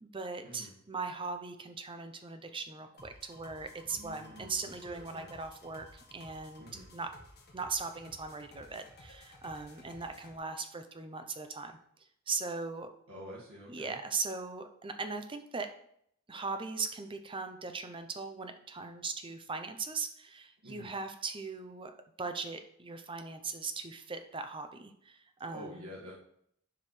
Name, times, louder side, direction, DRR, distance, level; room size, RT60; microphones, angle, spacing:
voice 1, 0.0-6.6 6.9-7.1 7.5-11.8 12.3-12.9 13.7-15.7 16.3-21.9 22.2-25.9, right 4 dB, 25° right, 7 dB, 0.6 m, -39 dB
sound 1, 3.0-10.4, left 1 dB, 50° left, 1.5 m, -55 dB
voice 2, 3.9-5.3 6.6-6.9 13.1-14.0 20.6-20.9 25.5-26.1, equal, 75° right, -6 dB, 1.9 m, -48 dB
10.5 x 4.9 x 3.2 m, 0.69 s
head